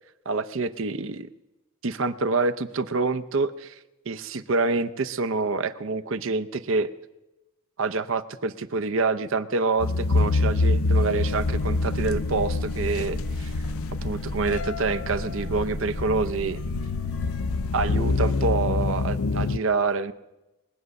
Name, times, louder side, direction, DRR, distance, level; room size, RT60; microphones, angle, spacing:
voice 1, 0.3-1.3 1.8-3.8 4.1-6.9 7.8-13.6 14.0-16.6 17.7-20.1, right 3 dB, 65° right, 12 dB, 0.6 m, -27 dB
sound 1, 9.8-19.6, left 3 dB, 80° left, 0.5 m, -26 dB
sound 2, 11.3-18.2, equal, 35° right, 1.3 m, -36 dB
21.5 x 8.1 x 6.4 m, 1.0 s
head